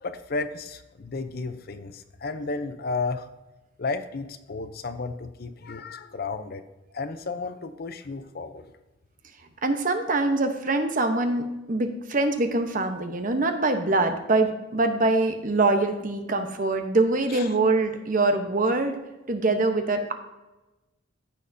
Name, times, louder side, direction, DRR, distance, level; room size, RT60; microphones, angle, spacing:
voice 1, 0.0-3.3 3.8-6.7 6.9-8.7 17.3-17.5, left 3 dB, 50° left, 10 dB, 0.6 m, -33 dB
voice 2, 9.6-19.0 19.3-20.1, right 2 dB, 45° right, 6 dB, 0.9 m, -24 dB
14.0 x 6.4 x 2.7 m, 1.0 s
head